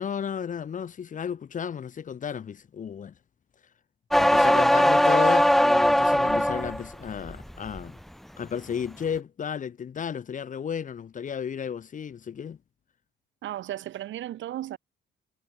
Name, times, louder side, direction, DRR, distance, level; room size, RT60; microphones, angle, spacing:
voice 1, 0.0-3.1 4.2-7.9 8.4-12.6, left 7 dB, 40° left, 0.7 m, -33 dB
sound 1, 4.1-6.8 7.2-7.8, equal, ahead, 0.4 m, -20 dB
voice 2, 13.4-14.8, right 13 dB, 75° right, 1.0 m, -35 dB
cardioid pair, 90°, 20 cm